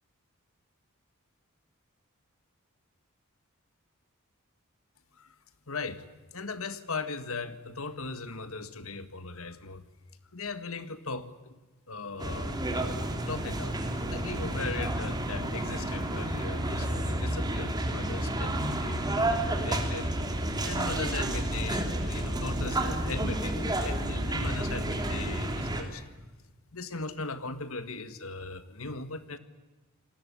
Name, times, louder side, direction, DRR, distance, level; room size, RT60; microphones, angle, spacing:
voice 1, 5.7-6.1 6.3-9.8 10.3-11.6 11.9-12.6 13.3-20.1 20.6-26.1 26.7-29.4, left 3 dB, 70° left, 11 dB, 1.8 m, -38 dB
sound 1, 12.2-25.8, right 1 dB, 20° right, 3.1 m, -30 dB
28.0 x 19.5 x 8.5 m, 1.2 s
head